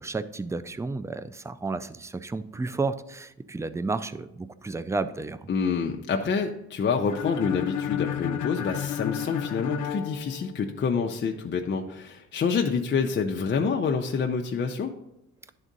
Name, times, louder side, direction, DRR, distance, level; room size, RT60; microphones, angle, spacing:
voice 1, 0.0-5.4, right 3 dB, 10° right, 13 dB, 0.3 m, -32 dB
voice 2, 5.5-14.9, left 5 dB, 35° left, 2 dB, 0.6 m, -27 dB
sound 1, 7.1-11.0, left 9 dB, 80° left, 0.6 m, -31 dB
10.5 x 3.6 x 3.9 m, 0.84 s
cardioid pair, 90°, 30 cm